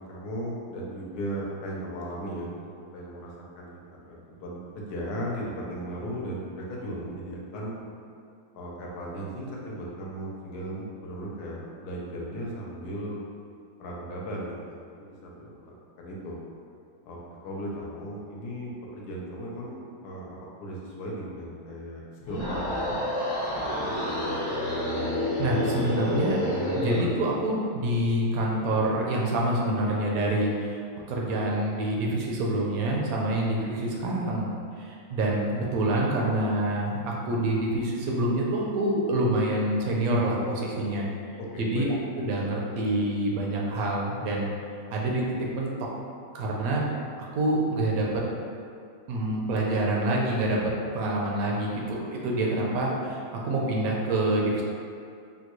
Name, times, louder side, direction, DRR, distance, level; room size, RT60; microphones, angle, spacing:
voice 1, 0.0-7.7 8.5-13.2 13.8-16.3 17.0-17.2 17.4-22.0 22.3-23.0 41.4-41.9, equal, 75° left, -4 dB, 1.2 m, -36 dB
sound 1, 22.2-27.1, left 1 dB, 50° left, 0.9 m, -29 dB
voice 2, 25.4-26.4 26.7-30.8 31.1-34.5 34.8-41.1 41.6-44.5 44.9-45.2 45.5-45.7 46.3-46.8 47.2-48.2 49.1-54.6, right 1 dB, 70° right, -3 dB, 0.9 m, -26 dB
3.6 x 2.2 x 3.0 m, 2.4 s
omnidirectional pair, 1.7 m